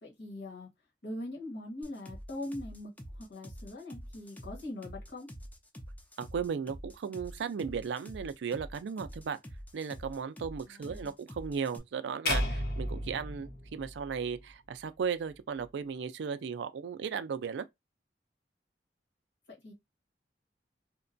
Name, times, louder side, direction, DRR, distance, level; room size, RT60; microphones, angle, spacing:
voice 1, 0.0-0.7 1.0-5.3 10.6-11.1 19.5-19.7, left 1 dB, 80° left, 1.3 m, -42 dB
sound 1, 1.8-11.8, equal, 10° left, 0.5 m, -46 dB
voice 2, 6.2-9.4 9.7-17.6, right 6 dB, 85° right, 0.4 m, -36 dB
sound 2, 12.3-14.5, left 1 dB, 60° left, 0.8 m, -33 dB
2.8 x 2.2 x 2.5 m
head